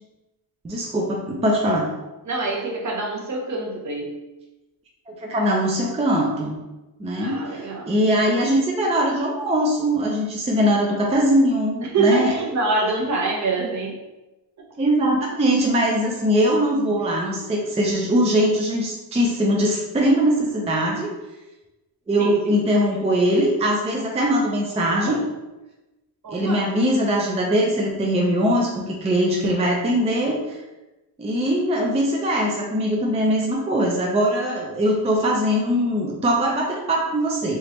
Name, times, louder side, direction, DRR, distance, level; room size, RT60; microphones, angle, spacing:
voice 1, 0.6-1.9 5.1-6.6 7.0-12.3 14.8-21.1 22.1-25.2 26.3-30.6 31.2-37.6, equal, 15° right, -2 dB, 0.4 m, -21 dB
voice 2, 2.2-4.2 7.2-7.9 11.8-14.0 22.2-22.6 26.2-26.7, right 3 dB, 40° right, -1 dB, 0.8 m, -25 dB
3.4 x 2.9 x 3.0 m, 1.1 s
cardioid pair, 120°, 42 cm